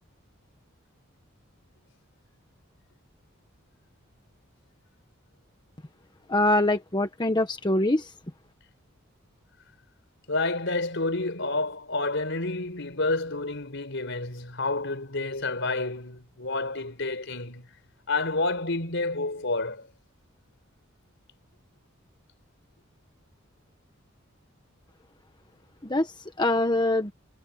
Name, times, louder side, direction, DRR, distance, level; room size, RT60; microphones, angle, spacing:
voice 1, 6.3-8.1 25.8-27.1, left 2 dB, 20° left, 1.3 m, -24 dB
voice 2, 10.3-17.7 18.1-19.9, left 2 dB, 60° left, 4.9 m, -29 dB
head